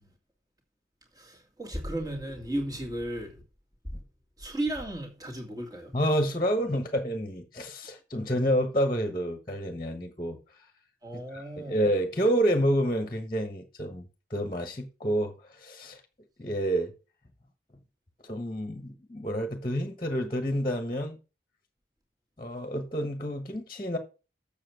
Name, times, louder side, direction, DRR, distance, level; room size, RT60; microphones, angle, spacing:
voice 1, 1.2-3.3 4.4-6.0 11.0-11.8, right 1 dB, 20° right, 2.2 m, -34 dB
voice 2, 5.9-10.4 11.3-14.0 14.3-16.0 16.4-16.9 18.2-21.2 22.4-24.0, equal, 25° left, 1.2 m, -29 dB
7.5 x 7.0 x 5.9 m
head